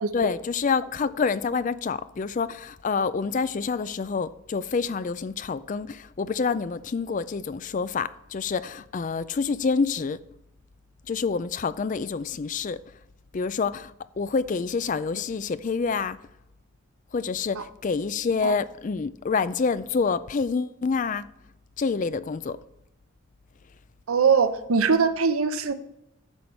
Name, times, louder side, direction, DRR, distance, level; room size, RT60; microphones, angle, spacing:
voice 1, 0.1-10.2 11.1-12.8 13.3-16.2 17.1-21.3 21.8-22.6, left 5 dB, 35° left, 0.3 m, -27 dB
voice 2, 24.1-25.7, right 5 dB, 80° right, 0.7 m, -21 dB
10.5 x 7.1 x 4.4 m
head